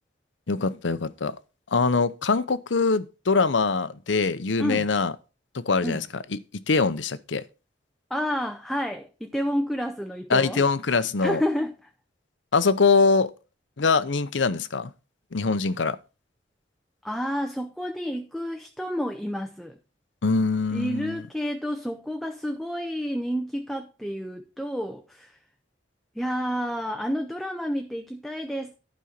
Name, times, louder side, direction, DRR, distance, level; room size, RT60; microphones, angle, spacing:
voice 1, 0.5-1.4 1.7-5.1 5.5-6.1 6.3-7.4 10.3-11.4 12.5-13.3 13.8-14.9 15.3-16.0 20.2-21.2, left 4 dB, 80° left, 0.7 m, -23 dB
voice 2, 8.1-10.6 11.2-11.7 17.0-19.8 20.7-25.4 26.2-28.8, equal, ahead, 0.6 m, -30 dB
11.5 x 5.3 x 5.9 m
head